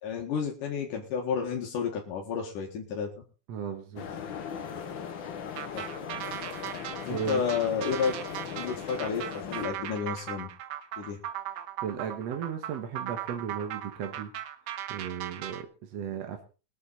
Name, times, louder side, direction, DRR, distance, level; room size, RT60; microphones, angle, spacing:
voice 1, 0.0-3.1 5.7-5.9 7.0-8.1 8.5-10.5 11.0-11.2, left 6 dB, 80° left, 0 dB, 3.4 m, -31 dB
voice 2, 3.5-4.1 7.1-7.4 11.8-14.3 14.9-16.4, right 8 dB, 60° right, 5 dB, 2.2 m, -35 dB
sound 1, 4.0-9.7, left 7 dB, 55° left, 1.4 m, -38 dB
sound 2, 5.6-15.6, right 11 dB, 85° right, 2.6 m, -38 dB
22.0 x 8.4 x 4.2 m, 0.35 s
omnidirectional pair, 3.6 m